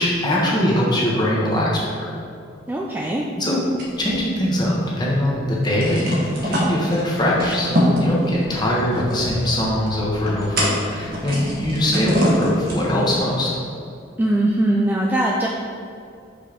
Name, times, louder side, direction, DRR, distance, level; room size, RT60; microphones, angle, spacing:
voice 1, 0.0-1.7 2.0-2.1 3.4-3.6 4.0-13.5, left 1 dB, 20° left, -4 dB, 1.1 m, -21 dB
voice 2, 2.7-3.2 14.2-15.5, right 1 dB, 10° right, -3 dB, 0.3 m, -20 dB
sound 1, 3.8-5.0 5.2-5.3 5.6-13.1, equal, 50° right, 1.3 m, -25 dB
5.3 x 4.3 x 5.0 m, 2.4 s
head